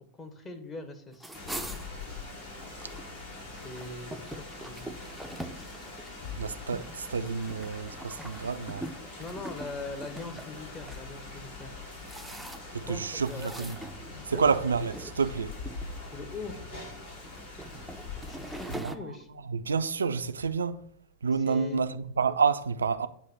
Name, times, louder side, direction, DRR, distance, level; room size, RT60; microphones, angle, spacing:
voice 1, 0.2-1.4 3.5-4.9 9.2-11.7 12.8-13.7 14.3-14.5 16.1-16.6 18.2-19.3 21.3-21.8, left 3 dB, 20° left, 0.9 m, -41 dB
sound 1, 1.1-3.1 3.4-11.0 11.6-12.9 13.2-14.4 14.9-15.2 15.6-16.3 17.0-19.0, right 1 dB, ahead, 0.4 m, -43 dB
Rain, 1.3-18.8, left 3 dB, 60° left, 2.2 m, -43 dB
voice 2, 6.4-8.8 12.7-13.8 14.3-15.5 18.8-18.9 19.5-20.8 21.2-23.1, right 5 dB, 70° right, 0.3 m, -29 dB
7.9 x 2.7 x 5.4 m
figure-of-eight pair, 90°, 0 cm